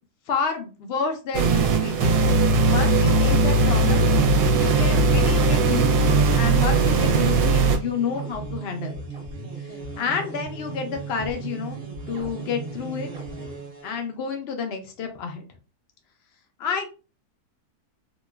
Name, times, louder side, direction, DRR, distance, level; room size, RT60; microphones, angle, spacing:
voice 1, 0.3-2.3 2.7-4.0 4.5-9.0 9.6-9.7 10.0-11.8 12.1-13.1 13.8-15.4 16.6-16.9, left 6 dB, 70° left, 5 dB, 0.6 m, -30 dB
sound 1, 1.3-7.8, right 3 dB, 80° right, 1.1 m, -19 dB
sound 2, 3.0-14.0, right 4 dB, 50° right, 0.7 m, -36 dB
2.8 x 2.3 x 2.2 m, 0.32 s
omnidirectional pair, 1.7 m